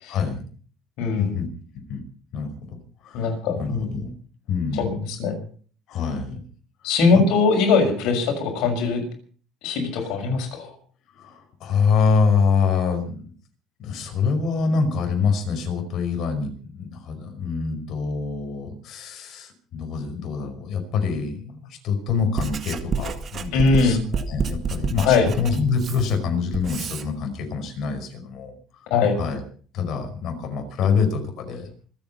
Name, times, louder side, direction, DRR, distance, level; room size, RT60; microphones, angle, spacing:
voice 1, 0.1-0.4 1.2-1.5 1.9-2.0 2.3-4.1 4.5-4.9 5.9-6.4 7.1-7.2 10.0-10.1 11.1-13.3 13.8-28.6 29.2-29.4 29.7-31.7, left 5 dB, 60° left, 5 dB, 5.2 m, -25 dB
voice 2, 1.0-1.3 3.1-3.9 4.8-5.4 6.8-9.0 9.6-10.7 23.5-24.0 25.0-25.3 28.9-29.2, left 4 dB, 80° left, 3 dB, 6.2 m, -21 dB
Writing, 22.1-27.1, right 6 dB, 40° right, 1.9 m, -29 dB
25.5 x 8.9 x 5.7 m, 0.44 s
cardioid pair, 120°, 0 cm